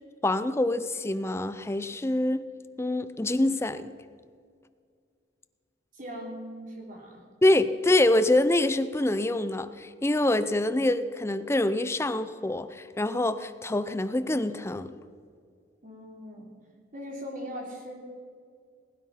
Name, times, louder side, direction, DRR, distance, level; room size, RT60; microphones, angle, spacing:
voice 1, 0.2-2.5 2.8-3.9 7.4-15.0, left 1 dB, 15° left, 0.5 m, -25 dB
voice 2, 5.9-7.2 15.8-16.5 16.9-18.0, equal, 45° right, 3.4 m, -40 dB
20.0 x 9.9 x 5.7 m
head